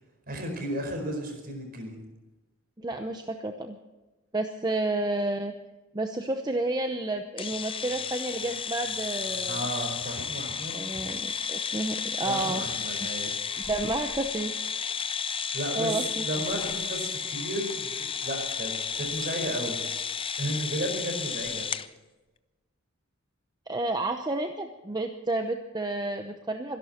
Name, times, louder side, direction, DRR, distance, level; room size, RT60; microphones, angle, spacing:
voice 1, 0.3-2.0 9.5-11.0 12.2-13.3 15.5-15.9 16.2-18.7 19.0-19.8 20.4-21.7, right 1 dB, 45° right, 4 dB, 4.7 m, -34 dB
voice 2, 2.8-3.8 4.3-5.5 5.9-9.6 10.7-12.6 13.7-14.6 15.8-16.3 23.7-26.8, right 2 dB, 20° right, 5 dB, 0.8 m, -30 dB
sound 1, 7.4-21.9, left 6 dB, 25° left, 0.6 m, -33 dB
24.5 x 11.5 x 4.4 m, 1.1 s
head